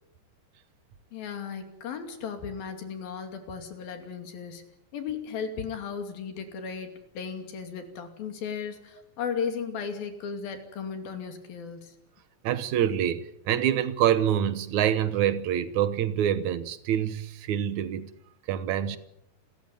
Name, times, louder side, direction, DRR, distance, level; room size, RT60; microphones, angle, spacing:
voice 1, 1.1-4.7 4.9-12.0, left 6 dB, 70° left, 4.4 m, -35 dB
voice 2, 12.4-18.1 18.5-19.0, right 10 dB, 65° right, 2.1 m, -26 dB
28.5 x 14.0 x 9.1 m
omnidirectional pair, 4.3 m